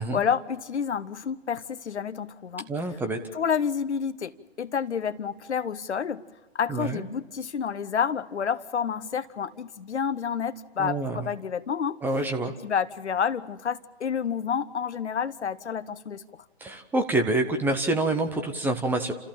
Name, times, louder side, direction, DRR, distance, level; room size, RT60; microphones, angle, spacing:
voice 1, 0.0-2.7 3.3-6.2 6.5-12.0 12.6-16.2, left 7 dB, 80° left, 13 dB, 1.0 m, -29 dB
voice 2, 2.7-3.2 6.7-7.1 10.8-11.2 12.0-12.5 16.6-19.1, right 2 dB, 5° right, 5 dB, 0.7 m, -27 dB
30.0 x 14.0 x 7.3 m, 1.2 s
hypercardioid pair, 140°, 33 cm